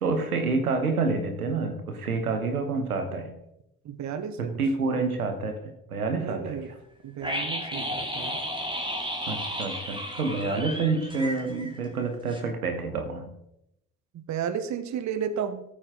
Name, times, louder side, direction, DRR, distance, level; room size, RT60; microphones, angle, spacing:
voice 1, 0.0-3.3 4.6-6.7 9.3-13.3, right 3 dB, 80° right, 6 dB, 1.4 m, -28 dB
voice 2, 3.8-4.6 6.2-6.7 7.0-8.4 14.1-15.6, right 8 dB, 40° right, 11 dB, 1.1 m, -33 dB
sound 1, 7.2-12.0 12.3-12.4, equal, 10° right, 2.6 m, -33 dB
14.0 x 8.9 x 3.8 m, 0.81 s
figure-of-eight pair, 45°, 43 cm